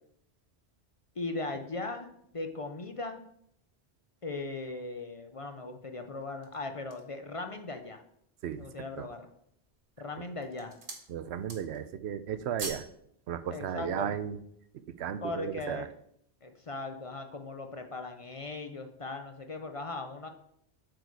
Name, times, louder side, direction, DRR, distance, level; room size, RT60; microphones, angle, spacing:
voice 1, 1.2-3.2 4.2-8.0 8.6-9.3 10.0-10.8 13.5-14.1 15.2-15.9 16.4-20.3, left 3 dB, 40° left, 6 dB, 0.6 m, -38 dB
sound 1, 6.2-7.2 7.8-7.9 8.4-8.9 9.6-10.0 10.3-11.1 11.4-11.9 12.2-12.9 13.3-13.4, right 3 dB, 55° right, 1.3 m, -43 dB
voice 2, 11.1-12.9 13.3-14.4 14.9-15.9, right 9 dB, 90° right, 12 dB, 0.9 m, -35 dB
8.0 x 4.8 x 4.6 m, 0.70 s
omnidirectional pair, 1.1 m